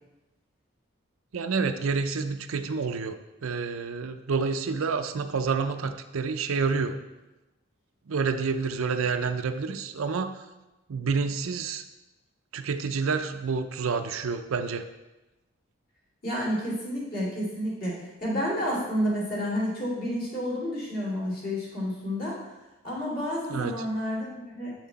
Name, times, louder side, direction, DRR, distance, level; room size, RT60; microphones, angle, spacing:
voice 1, 1.3-3.2 3.4-7.0 8.1-10.3 10.9-11.8 12.5-14.8 23.5-23.7, right 5 dB, 85° right, 8 dB, 0.5 m, -28 dB
voice 2, 16.2-22.5 22.8-24.7, equal, 45° left, -5 dB, 2.6 m, -30 dB
7.2 x 6.0 x 4.1 m, 1.0 s
head